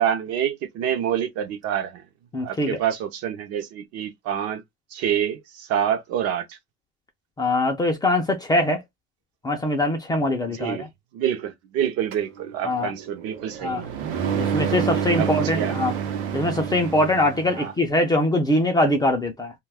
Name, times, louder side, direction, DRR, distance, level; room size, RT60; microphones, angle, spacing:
voice 1, 0.0-2.0 2.4-4.6 4.9-6.6 10.5-10.9 11.1-13.8 15.2-15.7 17.5-17.7, right 9 dB, 45° right, 0.6 m, -27 dB
voice 2, 2.3-2.8 7.4-8.8 9.4-10.9 12.6-12.9 13.6-13.8 14.4-15.9 16.3-19.5, left 1 dB, 10° left, 0.4 m, -22 dB
sound 1, 12.1-17.7, right 8 dB, 80° right, 0.8 m, -28 dB
2.3 x 2.2 x 3.3 m
supercardioid pair, 135°, 33 cm